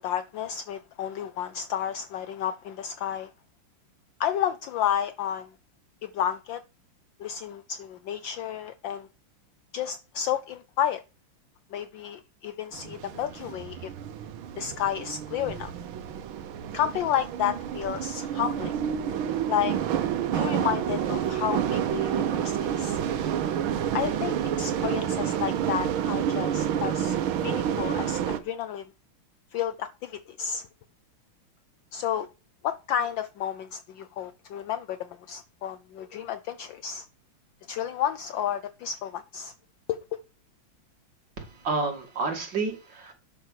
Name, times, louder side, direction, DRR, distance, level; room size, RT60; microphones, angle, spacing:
voice 1, 0.0-3.3 4.2-5.5 6.0-6.6 7.2-9.1 9.7-11.0 11.7-13.9 14.6-15.7 16.7-18.7 19.5-19.8 20.3-23.0 23.9-28.8 29.5-30.6 31.9-32.3 32.6-37.1 37.7-39.5 39.9-40.0, left 10 dB, 70° left, 1.3 m, -31 dB
sound 1, 12.7-28.4, right 9 dB, 75° right, 1.7 m, -29 dB
voice 2, 41.4-43.1, right 3 dB, 55° right, 3.2 m, -30 dB
11.0 x 5.6 x 6.4 m
omnidirectional pair, 2.3 m